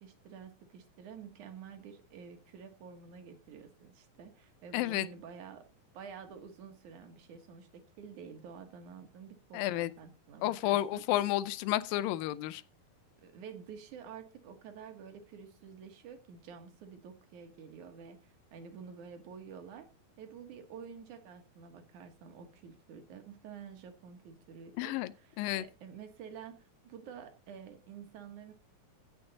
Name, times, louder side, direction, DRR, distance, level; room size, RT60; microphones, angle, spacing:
voice 1, 0.0-5.7 5.9-11.0 13.2-19.9 20.2-28.5, right 6 dB, 60° right, 2.6 m, -49 dB
voice 2, 4.7-5.1 9.5-9.9 10.4-12.6 24.8-25.1 25.4-25.6, left 14 dB, 80° left, 2.4 m, -31 dB
16.0 x 6.7 x 4.1 m
omnidirectional pair, 4.2 m